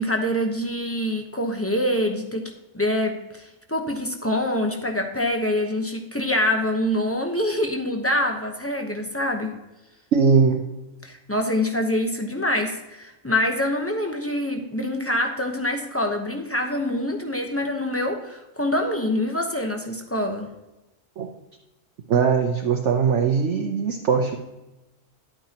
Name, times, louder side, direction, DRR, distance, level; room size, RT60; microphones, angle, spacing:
voice 1, 0.0-9.6 11.0-20.5, left 1 dB, 10° left, 3 dB, 0.7 m, -25 dB
voice 2, 10.1-10.6 21.2-21.3 22.1-24.4, right 6 dB, 60° right, 2 dB, 1.0 m, -20 dB
11.0 x 8.9 x 2.9 m, 1.0 s
omnidirectional pair, 1.4 m